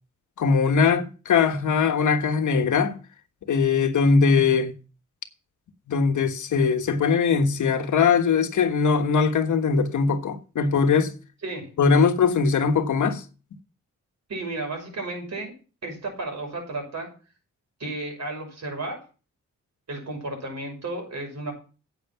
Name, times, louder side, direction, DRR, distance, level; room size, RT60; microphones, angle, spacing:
voice 1, 0.4-3.0 3.5-4.7 5.9-11.1 11.8-13.2, left 5 dB, 75° left, 1.4 m, -21 dB
voice 2, 14.3-15.5 15.8-17.1 17.8-19.0 19.9-21.5, right 2 dB, 60° right, 6.1 m, -33 dB
9.3 x 8.1 x 5.8 m
cardioid pair, 75°, 30 cm